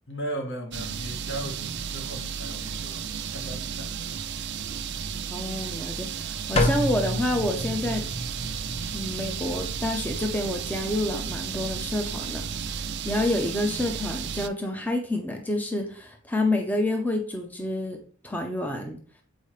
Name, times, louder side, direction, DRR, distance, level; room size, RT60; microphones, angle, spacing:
voice 1, 0.1-4.3, right 1 dB, 60° left, 1.5 m, -37 dB
sound 1, 0.7-14.5, right 7 dB, 55° right, 0.5 m, -33 dB
voice 2, 5.3-8.1 8.9-12.4 12.7-18.0 18.2-19.0, left 1 dB, 10° left, 0.7 m, -28 dB
sound 2, 6.6-12.8, left 1 dB, 30° left, 0.9 m, -32 dB
8.3 x 4.6 x 3.2 m
head